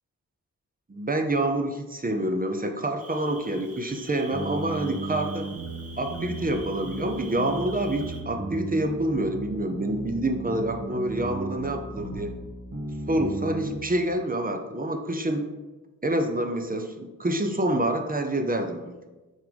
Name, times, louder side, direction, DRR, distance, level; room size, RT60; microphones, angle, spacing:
voice 1, 0.9-5.5 6.0-12.4 13.1-15.5 16.0-19.0, right 1 dB, 25° right, 5 dB, 0.6 m, -27 dB
Cricket, 3.0-8.2, right 3 dB, 45° right, 1.2 m, -46 dB
sound 1, 4.3-13.8, right 2 dB, 65° right, 1.7 m, -35 dB
6.3 x 3.6 x 5.1 m, 1.2 s
wide cardioid pair, 110°, 33 cm